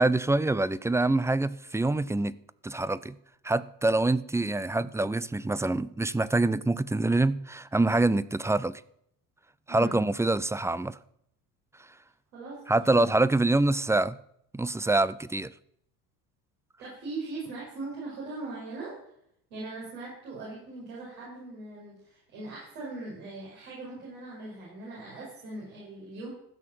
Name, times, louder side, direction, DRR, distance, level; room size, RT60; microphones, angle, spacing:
voice 1, 0.0-2.4 2.6-3.2 3.4-8.8 9.7-11.0 12.7-14.2 14.5-15.5, right 2 dB, 5° right, 0.5 m, -25 dB
voice 2, 9.7-10.0 12.3-12.6 12.9-13.1 16.8-18.9 19.5-26.3, right 2 dB, 85° right, 6.0 m, -40 dB
15.0 x 6.4 x 7.6 m
hypercardioid pair, 70°, 46 cm